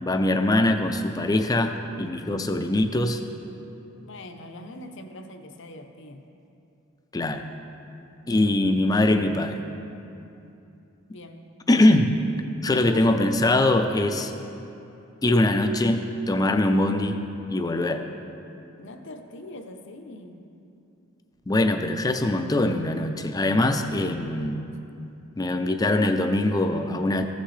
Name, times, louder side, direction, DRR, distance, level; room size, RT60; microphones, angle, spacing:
voice 1, 0.0-3.2 7.1-7.4 8.3-9.6 11.7-12.1 12.6-14.3 15.2-17.2 17.5-18.0 21.5-24.6 25.4-27.3, left 1 dB, 15° left, 7 dB, 0.4 m, -22 dB
voice 2, 4.0-6.2 11.1-11.4 12.9-13.4 18.8-20.5, left 1 dB, 60° left, 6 dB, 0.7 m, -41 dB
15.0 x 6.5 x 3.2 m, 2.7 s
head